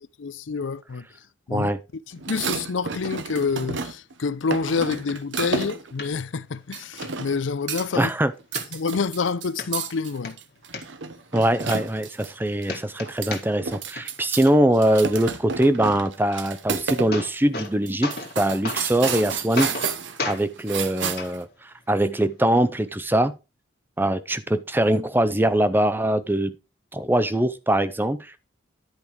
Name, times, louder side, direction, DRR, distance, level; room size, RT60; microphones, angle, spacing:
voice 1, 0.2-1.0 1.5-1.7 2.3-8.1 8.7-10.4, left 5 dB, 80° left, 0.5 m, -27 dB
sound 1, 2.2-4.1 4.5-5.9 6.7-7.4 7.7-8.1 8.4-12.3 12.6-12.7 13.0-14.5 14.7-17.1 17.4-17.5 17.9-21.4, right 5 dB, 80° right, 1.0 m, -31 dB
sound 2, 6.0-6.1 6.5-6.6 7.0-7.1 7.6-8.0 8.5-9.1 9.6-9.7 10.1-10.8 11.4-11.5 11.7-12.4 12.6-13.7 14.0-14.5 16.5-16.6 16.9-17.7 18.0-18.4 18.6-19.2 19.6-19.9 20.2-20.4 21.2-21.3 22.2-22.3, left 3 dB, 50° left, 1.6 m, -32 dB
voice 2, 7.9-8.3 11.3-19.7 20.3-23.3 24.0-26.5 26.9-28.3, right 1 dB, 10° right, 0.5 m, -22 dB
10.5 x 5.2 x 4.6 m
head